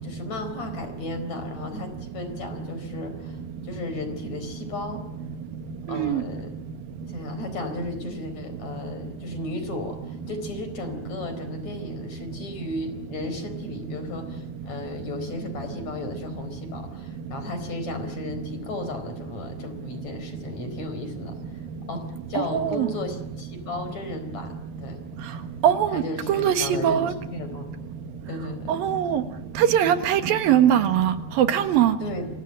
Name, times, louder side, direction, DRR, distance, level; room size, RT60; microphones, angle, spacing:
voice 1, 0.0-5.0 5.9-6.5 7.1-21.6 21.9-25.0 25.9-27.7 28.3-28.8 32.0-32.3, left 2 dB, 50° left, 5.5 m, -35 dB
voice 2, 5.9-6.2 22.4-22.9 25.6-26.0 26.3-27.1 28.7-29.2 29.6-32.0, right 10 dB, 85° right, 3.4 m, -21 dB
29.0 x 25.5 x 7.7 m
omnidirectional pair, 4.0 m